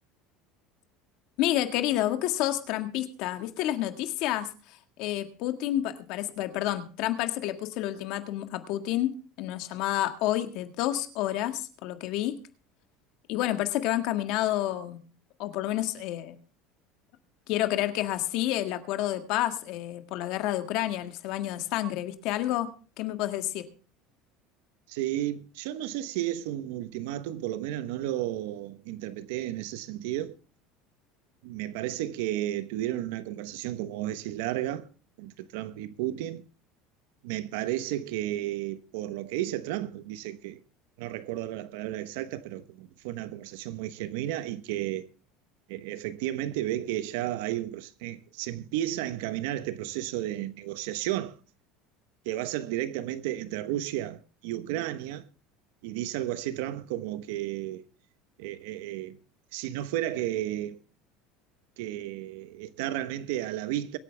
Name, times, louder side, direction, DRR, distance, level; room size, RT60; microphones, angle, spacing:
voice 1, 1.4-12.4 13.3-15.0 15.4-16.4 17.5-22.7 23.0-23.7, left 13 dB, 65° left, 1.7 m, -29 dB
voice 2, 24.9-30.4 31.4-34.9 35.2-36.4 37.2-40.6 41.0-45.1 45.7-51.4 52.2-55.2 55.8-57.8 58.4-59.2 59.5-60.8 61.8-64.0, right 13 dB, 80° right, 1.0 m, -33 dB
23.5 x 8.6 x 3.4 m
supercardioid pair, 130°, 0 cm